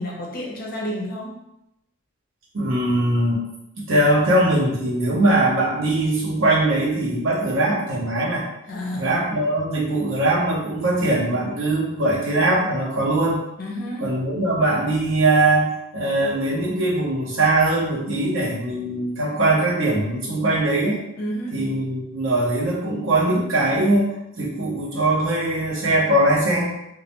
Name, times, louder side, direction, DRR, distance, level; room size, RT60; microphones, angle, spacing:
voice 1, 0.0-1.4 8.7-9.2 13.6-14.1 21.2-21.6, equal, 45° left, -2 dB, 0.5 m, -30 dB
voice 2, 2.5-3.4 3.8-8.4 8.9-13.4 14.0-21.0 21.5-26.7, right 1 dB, 70° right, -5 dB, 0.8 m, -21 dB
2.3 x 2.1 x 2.9 m, 0.84 s
head